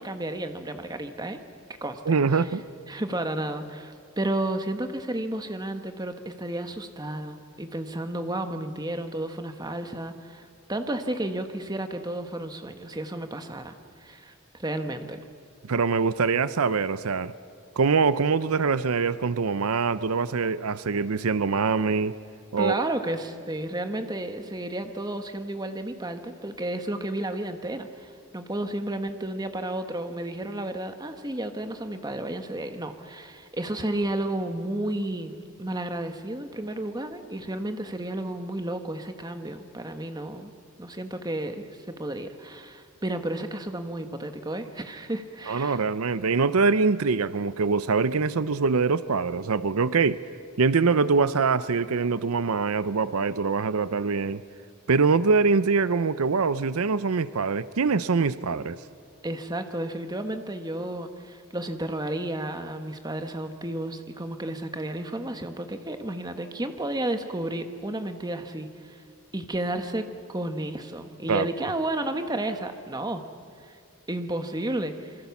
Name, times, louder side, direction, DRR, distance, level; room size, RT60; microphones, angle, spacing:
voice 1, 0.0-1.4 1.8-2.0 2.3-2.5 2.9-13.7 14.0-14.3 14.6-15.2 22.6-40.5 40.8-45.8 59.2-69.0 69.3-73.2 73.7-73.8 74.1-75.1, right 1 dB, 20° right, 7 dB, 1.3 m, -32 dB
voice 2, 2.1-2.6 15.6-17.3 17.8-22.1 22.5-22.8 45.5-50.2 50.6-54.4 54.9-58.8 71.3-71.5, right 4 dB, 80° right, 15 dB, 0.6 m, -24 dB
26.5 x 23.0 x 7.2 m, 2.2 s
head